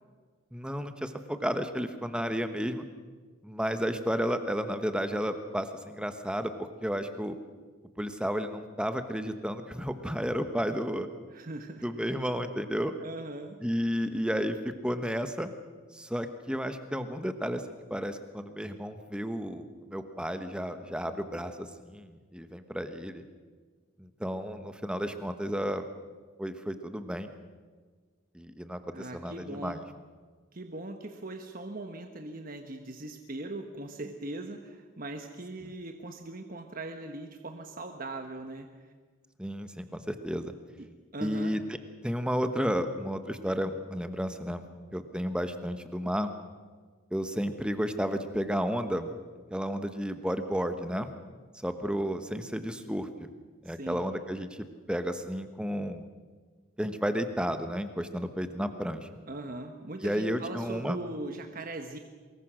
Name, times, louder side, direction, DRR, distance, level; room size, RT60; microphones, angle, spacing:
voice 1, 0.5-2.8 3.4-7.4 8.0-11.1 11.8-12.9 13.6-15.5 15.9-17.6 17.9-23.2 24.0-25.9 26.4-27.3 28.3-29.8 35.6-35.7 39.4-40.5 41.2-41.8 42.0-44.7 44.9-46.3 47.1-49.1 49.5-51.1 51.6-53.3 53.6-56.0 56.8-59.1 60.0-61.0, equal, 5° right, 8 dB, 1.2 m, -32 dB
voice 2, 11.3-11.9 13.0-13.6 28.9-29.8 30.5-38.9 40.8-40.9 41.1-41.6 53.7-54.0 59.3-62.0, right 2 dB, 40° right, 5 dB, 1.2 m, -40 dB
24.5 x 21.5 x 6.3 m, 1.5 s
head